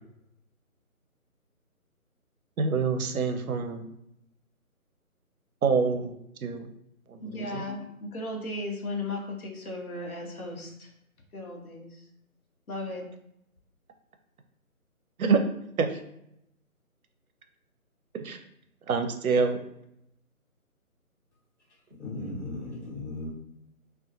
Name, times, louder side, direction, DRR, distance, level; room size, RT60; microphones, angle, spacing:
voice 1, 2.6-3.9 5.6-6.7 7.1-7.6 15.2-15.4 15.8-16.0 18.2-18.4 18.9-19.6, right 5 dB, 70° right, 0.5 m, -26 dB
voice 2, 7.2-10.9 11.3-12.0 12.7-13.1, left 2 dB, 75° left, 0.8 m, -36 dB
voice 3, 22.0-23.3, left 2 dB, 50° left, 1.1 m, -36 dB
2.4 x 2.1 x 2.7 m
figure-of-eight pair, 155°, 44 cm